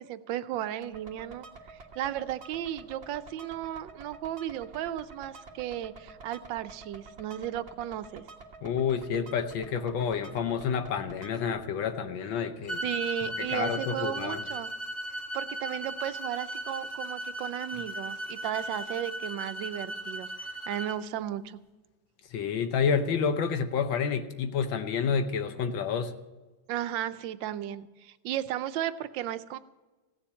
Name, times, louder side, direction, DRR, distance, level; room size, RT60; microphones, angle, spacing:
voice 1, 0.0-8.2 12.8-14.7 15.3-20.3 20.7-21.6 26.7-29.6, right 11 dB, 75° right, 12 dB, 1.3 m, -35 dB
sound 1, 0.8-11.5, right 3 dB, 35° right, 1.5 m, -49 dB
voice 2, 8.6-12.8 13.4-14.4 22.3-26.1, left 6 dB, 75° left, 9 dB, 1.6 m, -29 dB
sound 2, 12.7-21.0, right 1 dB, 30° left, 1.8 m, -37 dB
16.0 x 7.2 x 9.6 m, 1.2 s
omnidirectional pair, 2.1 m